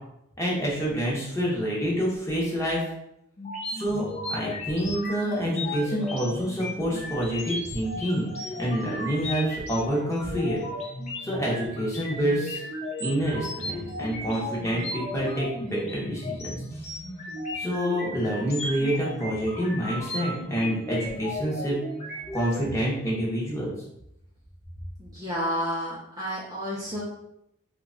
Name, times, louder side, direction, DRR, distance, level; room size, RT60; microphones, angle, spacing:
voice 1, 0.4-2.8 3.7-8.2 8.6-10.6 11.2-12.6 13.0-16.5 17.6-21.8 22.3-23.7, equal, 15° left, -5 dB, 0.9 m, -27 dB
sound 1, 3.4-22.6, left 1 dB, 30° left, 0.6 m, -35 dB
voice 2, 25.0-27.0, equal, 15° right, -6 dB, 0.6 m, -31 dB
2.9 x 2.3 x 3.7 m, 0.79 s
head